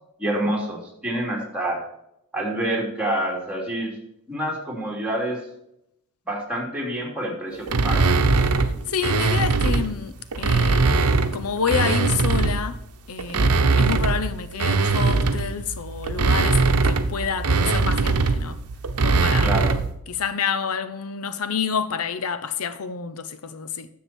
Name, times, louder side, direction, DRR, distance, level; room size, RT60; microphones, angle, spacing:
voice 1, 0.2-1.8 2.3-3.9 4.3-5.4 6.3-8.1 19.4-19.7, right 1 dB, 5° right, 2.9 m, -27 dB
sound 1, 7.7-9.9 10.3-12.7 13.2-19.9, right 3 dB, 80° right, 0.9 m, -21 dB
voice 2, 8.9-11.0 11.3-12.8 13.1-18.6 19.0-19.5 20.1-23.9, left 6 dB, 75° left, 0.7 m, -28 dB
10.0 x 7.5 x 4.3 m
head